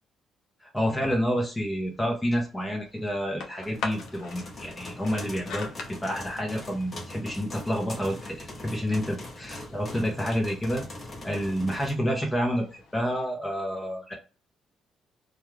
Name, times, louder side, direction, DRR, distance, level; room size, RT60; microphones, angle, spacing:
voice 1, 0.6-10.8 11.2-14.1, equal, 15° left, -1 dB, 0.8 m, -29 dB
sound 1, 1.1-13.3, left 4 dB, 80° left, 0.7 m, -45 dB
sound 2, 3.6-11.9, left 1 dB, 35° left, 1.1 m, -42 dB
2.4 x 2.3 x 3.1 m, 0.36 s
cardioid pair, 90°, 0 cm